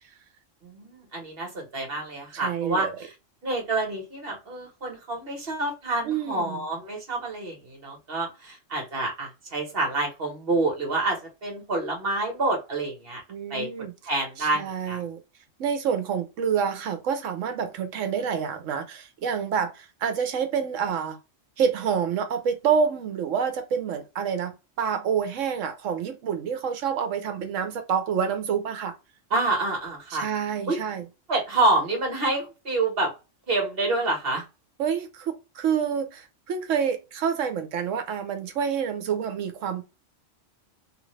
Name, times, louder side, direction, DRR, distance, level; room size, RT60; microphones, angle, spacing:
voice 1, 0.6-2.9 3.4-13.2 13.5-13.7 14.1-15.0 29.3-30.3 30.7-30.8 31.3-33.1 33.5-34.4, right 2 dB, 50° right, 1.5 m, -27 dB
voice 2, 2.3-3.0 6.0-6.6 13.3-13.9 14.4-15.2 15.6-21.2 21.6-28.9 30.1-31.0 34.8-39.8, right 7 dB, 75° right, 1.1 m, -28 dB
3.2 x 2.5 x 3.1 m
omnidirectional pair, 1.3 m